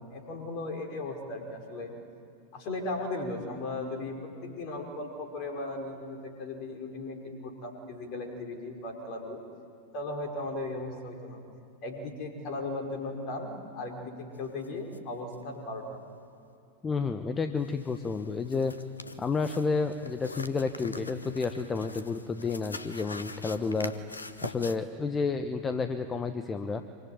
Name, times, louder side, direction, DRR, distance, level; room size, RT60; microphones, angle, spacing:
voice 1, 0.0-1.9 2.5-4.2 4.4-9.4 9.9-11.4 11.8-16.0, left 2 dB, 40° left, 2 dB, 5.5 m, -37 dB
sound 1, 14.6-14.7 14.9-15.0 15.3-15.4 17.6-24.8, left 3 dB, 80° left, 1.1 m, -43 dB
voice 2, 16.8-18.7 19.2-23.9 24.4-26.8, left 4 dB, 15° left, 9 dB, 1.2 m, -30 dB
26.0 x 24.0 x 9.5 m, 2.7 s
figure-of-eight pair, 90°, 0 cm